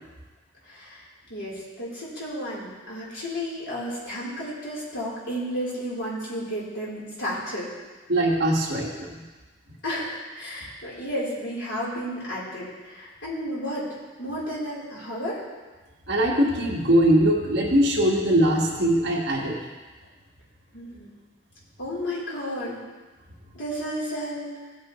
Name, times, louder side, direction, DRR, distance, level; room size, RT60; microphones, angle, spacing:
voice 1, 0.7-1.0 1.3-7.7 9.8-15.4 20.7-21.1 21.8-22.8 23.5-24.5, equal, 70° left, -7 dB, 3.8 m, -32 dB
voice 2, 8.1-9.1 16.1-19.6, right 1 dB, 55° right, -2 dB, 1.8 m, -21 dB
17.0 x 8.2 x 3.2 m, 1.3 s
head